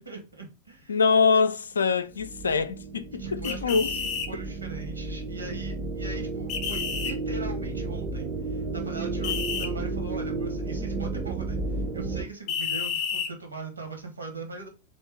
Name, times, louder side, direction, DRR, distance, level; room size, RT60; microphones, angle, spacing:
voice 1, 0.0-1.0 3.1-14.7, right 3 dB, 80° right, 1.4 m, -40 dB
voice 2, 0.9-3.9, left 5 dB, 70° left, 0.4 m, -24 dB
sound 1, 2.1-12.2, right 3 dB, 25° right, 0.6 m, -32 dB
sound 2, 3.4-4.3 6.5-7.1 9.2-9.7 12.5-13.3, left 7 dB, 40° left, 0.8 m, -30 dB
3.5 x 3.1 x 4.4 m
figure-of-eight pair, 90°, 0 cm